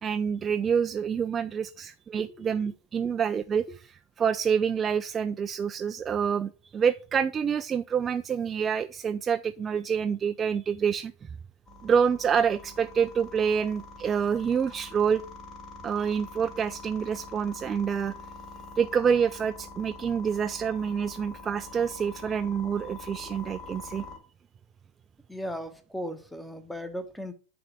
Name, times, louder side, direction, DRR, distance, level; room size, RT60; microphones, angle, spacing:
voice 1, 0.0-3.7 4.2-11.1 11.8-15.2 15.8-18.1 18.8-24.0, right 7 dB, 20° right, 0.3 m, -27 dB
voice 2, 2.2-2.7 3.0-3.1 3.7-3.8 25.3-27.3, equal, 5° left, 1.0 m, -37 dB
sound 1, 11.7-24.2, left 3 dB, 30° left, 2.9 m, -45 dB
8.8 x 3.5 x 6.1 m
figure-of-eight pair, 90°, 0 cm